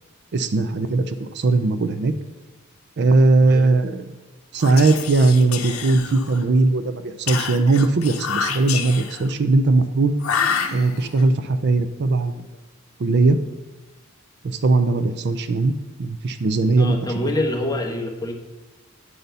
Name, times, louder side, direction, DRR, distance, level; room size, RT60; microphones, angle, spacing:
voice 1, 0.3-2.1 3.0-4.1 4.5-10.1 10.7-12.4 13.0-13.4 14.4-15.7 16.0-17.0, right 3 dB, 50° right, 11 dB, 0.4 m, -19 dB
voice 2, 3.4-3.7 16.8-18.3, left 1 dB, 20° left, 1 dB, 1.1 m, -26 dB
Whispering, 4.5-6.5 7.3-9.3 10.2-11.2, left 6 dB, 85° left, 0.7 m, -28 dB
9.1 x 4.1 x 6.7 m, 1.2 s
head